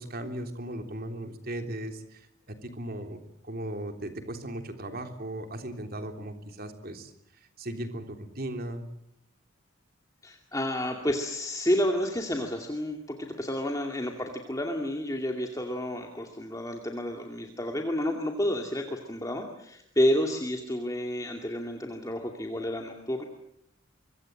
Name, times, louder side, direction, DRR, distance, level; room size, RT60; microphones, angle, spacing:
voice 1, 0.0-8.9, right 1 dB, 45° right, 6 dB, 3.3 m, -37 dB
voice 2, 10.2-23.2, equal, 15° left, 2 dB, 2.4 m, -30 dB
25.0 x 24.0 x 7.8 m, 0.76 s
head